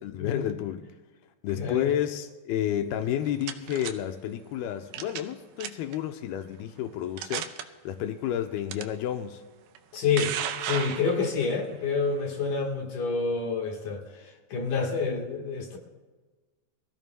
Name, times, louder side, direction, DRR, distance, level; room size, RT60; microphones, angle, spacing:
voice 1, 0.0-0.8 1.4-7.5 7.9-9.4, left 10 dB, 85° left, 6 dB, 2.5 m, -30 dB
voice 2, 1.6-1.9 9.9-10.3 10.6-14.0 14.5-15.8, left 5 dB, 60° left, 0 dB, 2.7 m, -28 dB
sound 1, 3.0-3.9 4.9-5.3 5.6-6.0 6.6-6.7 7.2-7.6 8.7-8.8 9.8-11.5, right 10 dB, 85° right, 2.7 m, -33 dB
23.5 x 14.5 x 2.2 m, 1.3 s
omnidirectional pair, 4.5 m